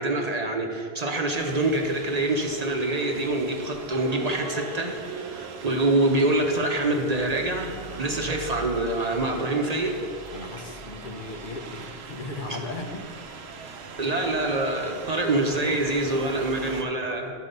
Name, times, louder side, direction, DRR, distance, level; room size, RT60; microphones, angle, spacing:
voice 1, 0.0-10.0 12.5-12.6 14.0-17.3, right 2 dB, 45° right, 2 dB, 0.8 m, -25 dB
sound 1, 1.3-16.8, right 5 dB, 90° right, 1.0 m, -40 dB
voice 2, 10.3-13.1, left 2 dB, 55° left, 4 dB, 0.8 m, -36 dB
11.0 x 4.7 x 5.3 m, 2.3 s
omnidirectional pair, 1.0 m